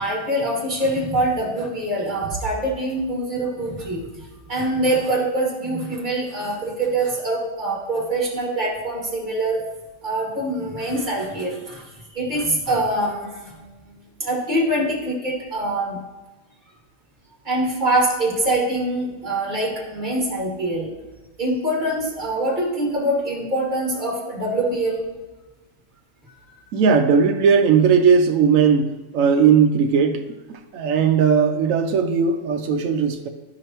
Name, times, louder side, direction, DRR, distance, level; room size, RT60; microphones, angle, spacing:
voice 1, 0.0-9.6 10.0-13.7 14.2-16.0 17.4-20.9 21.4-25.0, right 1 dB, 35° right, -3 dB, 2.2 m, -24 dB
voice 2, 26.7-28.9 29.1-30.2 30.5-33.3, right 6 dB, 80° right, 5 dB, 1.0 m, -17 dB
13.0 x 5.0 x 2.9 m, 1.1 s
omnidirectional pair, 1.4 m